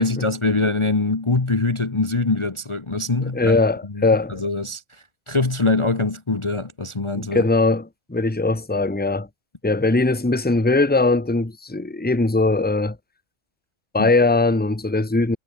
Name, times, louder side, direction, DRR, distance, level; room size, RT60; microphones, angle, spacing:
voice 1, 0.0-3.6 3.8-7.5 14.0-14.1, left 3 dB, 25° left, 1.2 m, -23 dB
voice 2, 3.2-4.4 7.1-9.3 9.6-13.0 13.9-15.4, left 3 dB, 5° left, 1.3 m, -20 dB
omnidirectional pair, 1.4 m